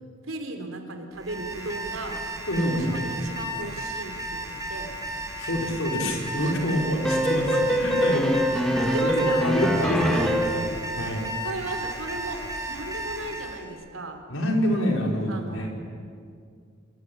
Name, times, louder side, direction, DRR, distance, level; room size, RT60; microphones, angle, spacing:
voice 1, 0.2-2.3 2.6-5.0 6.4-6.7 7.5-7.7 8.8-9.5 9.8-10.5 11.4-14.2 15.3-15.7, right 2 dB, 80° right, 6 dB, 3.7 m, -35 dB
Alarm, 1.1-13.6, right 1 dB, 20° right, 4.1 m, -34 dB
voice 2, 2.5-2.9 5.4-10.7 11.0-11.3 14.3-15.7, equal, 80° left, 0 dB, 5.3 m, -27 dB
sound 1, 7.0-10.7, equal, 5° left, 2.1 m, -24 dB
26.0 x 23.0 x 8.8 m, 2.2 s
head